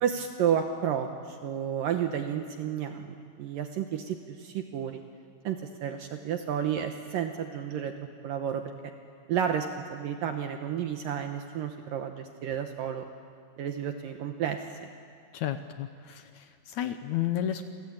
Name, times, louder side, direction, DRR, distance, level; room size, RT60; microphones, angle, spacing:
voice 1, 0.0-5.0 5.4-7.9 8.2-8.6 9.3-13.0 13.6-14.6, right 8 dB, 70° right, 5 dB, 2.5 m, -31 dB
voice 2, 15.3-17.6, left 11 dB, 80° left, 8 dB, 1.6 m, -32 dB
29.5 x 22.5 x 8.7 m, 2.2 s
omnidirectional pair, 4.6 m